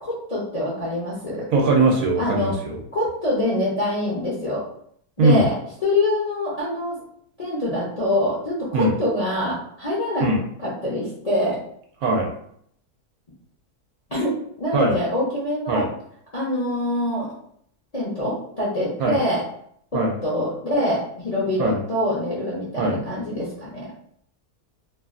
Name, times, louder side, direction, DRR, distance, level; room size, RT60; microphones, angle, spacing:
voice 1, 0.0-1.4 2.2-2.5 2.9-4.6 5.2-5.5 5.8-6.9 7.4-10.2 10.6-11.6 14.1-14.3 14.6-15.8 16.3-17.3 17.9-19.4 19.9-23.9, left 1 dB, 40° left, -8 dB, 0.5 m, -25 dB
voice 2, 1.5-2.8 5.2-5.4 8.7-8.9 10.2-10.4 12.0-12.3 14.7-15.0 15.7-15.9 19.0-19.2 19.9-20.1 21.6-21.8 22.8-23.0, right 2 dB, 75° right, 0 dB, 1.1 m, -20 dB
3.0 x 2.3 x 2.4 m, 0.66 s
omnidirectional pair, 1.6 m